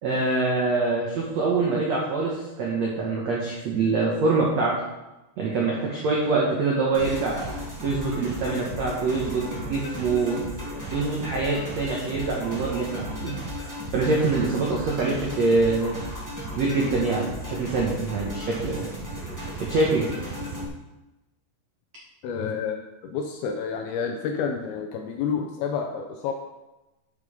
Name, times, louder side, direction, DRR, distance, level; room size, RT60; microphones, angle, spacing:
voice 1, 0.0-4.7 5.4-7.5 7.8-10.4 10.9-15.9 16.5-18.9 19.6-20.1, right 3 dB, 80° right, -3 dB, 1.5 m, -25 dB
sound 1, 6.9-20.6, equal, 15° right, 0.7 m, -35 dB
voice 2, 22.2-26.3, left 6 dB, 80° left, 3 dB, 2.3 m, -29 dB
11.5 x 5.3 x 5.1 m, 1.0 s
omnidirectional pair, 5.1 m